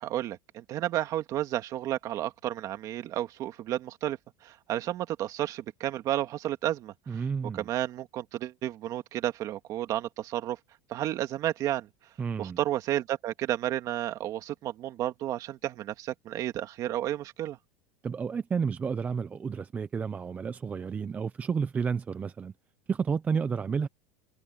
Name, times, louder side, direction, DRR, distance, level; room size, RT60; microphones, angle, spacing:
voice 1, 0.0-4.2 4.4-7.2 7.5-10.6 10.9-11.9 12.4-17.6, right 13 dB, 40° right, 2.2 m, -32 dB
voice 2, 7.1-7.7 12.2-12.6 18.0-22.5 22.9-23.9, right 6 dB, 15° right, 0.5 m, -31 dB
cardioid pair, 155°, 9 cm